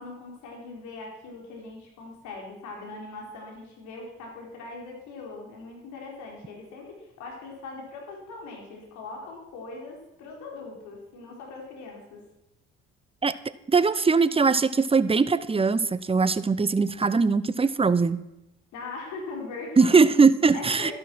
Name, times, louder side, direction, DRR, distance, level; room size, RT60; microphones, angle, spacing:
voice 1, 0.0-12.2 18.7-20.0 20.5-20.9, left 3 dB, 75° left, 0 dB, 4.3 m, -40 dB
voice 2, 13.7-18.2 19.8-20.9, right 4 dB, 20° right, 16 dB, 0.8 m, -21 dB
12.0 x 11.0 x 6.0 m, 0.90 s
hypercardioid pair, 55°, 29 cm